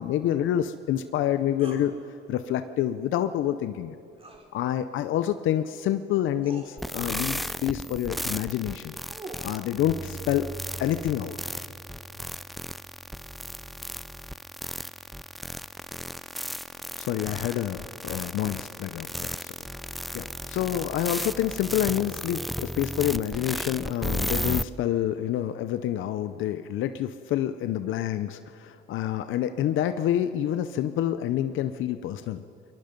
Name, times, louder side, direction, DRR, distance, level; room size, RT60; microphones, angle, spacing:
voice 1, 0.0-1.9 2.3-4.0 4.5-9.0 9.4-10.5 10.8-11.4 17.0-19.5 19.9-32.4, left 11 dB, 80° left, 10 dB, 0.7 m, -28 dB
sound 1, 1.6-1.9 4.2-4.5 5.8-5.9 6.4-6.7 8.7-9.6, right 3 dB, 30° right, 3.1 m, -43 dB
sound 2, 6.8-24.6, equal, ahead, 0.4 m, -35 dB
Bass guitar, 9.8-16.0, right 3 dB, 50° right, 2.5 m, -45 dB
23.0 x 21.5 x 5.3 m, 2.6 s
cardioid pair, 90°, 20 cm